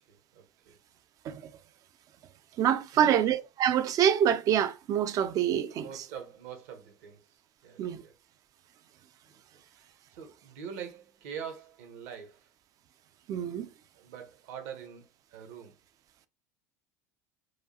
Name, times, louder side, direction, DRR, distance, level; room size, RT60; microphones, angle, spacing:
voice 1, 0.1-0.8 2.9-3.3 5.8-8.1 9.3-9.4 10.1-12.5 13.9-15.7, right 7 dB, 65° right, 1.0 m, -44 dB
voice 2, 2.6-5.9 7.8-8.0 13.3-13.7, right 9 dB, 40° right, 0.4 m, -26 dB
4.8 x 2.3 x 2.7 m
figure-of-eight pair, 70°, 9 cm